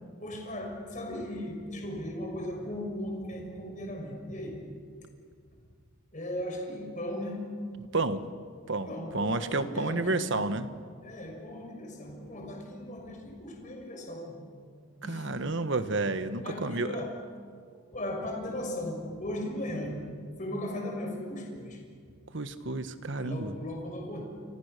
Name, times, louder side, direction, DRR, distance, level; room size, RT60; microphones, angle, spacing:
voice 1, 0.2-4.6 6.1-7.4 8.8-10.4 11.0-14.4 15.0-15.4 16.4-17.1 17.9-20.0 20.4-21.8 23.2-24.2, left 1 dB, 40° left, 1 dB, 6.2 m, -37 dB
voice 2, 7.9-8.2 8.7-10.7 15.1-17.0 22.3-23.5, right 3 dB, 60° right, 11 dB, 1.3 m, -30 dB
29.0 x 25.5 x 6.8 m, 2.1 s
head